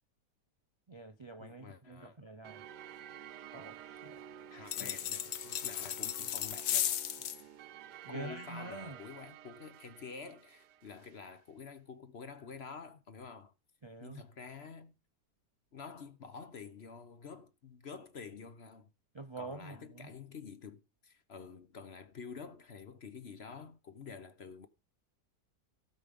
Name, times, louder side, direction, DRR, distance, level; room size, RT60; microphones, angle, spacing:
voice 1, 0.9-2.6 3.5-4.2 8.0-9.0 13.8-14.3 19.1-20.1, right 2 dB, 40° right, 0.4 m, -46 dB
voice 2, 1.4-2.2 4.5-7.0 8.1-13.5 14.0-14.9 15.7-18.9 19.4-24.7, left 5 dB, 45° left, 1.0 m, -49 dB
sound 1, 2.4-11.2, right 9 dB, 75° right, 1.3 m, -52 dB
sound 2, 4.7-7.4, left 11 dB, 90° left, 1.5 m, -35 dB
16.5 x 6.4 x 5.3 m
omnidirectional pair, 1.8 m